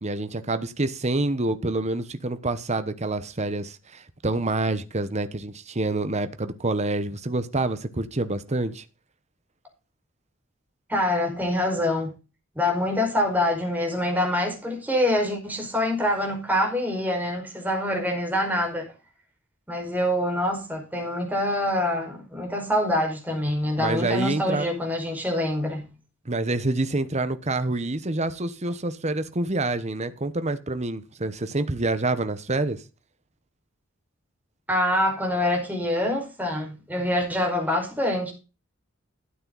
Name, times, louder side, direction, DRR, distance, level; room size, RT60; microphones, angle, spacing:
voice 1, 0.0-8.8 23.8-24.7 26.2-32.8, right 2 dB, 35° right, 1.1 m, -27 dB
voice 2, 10.9-12.1 12.5-18.9 19.7-25.9 34.7-38.3, left 1 dB, 10° right, 5.1 m, -25 dB
13.0 x 8.9 x 4.0 m
head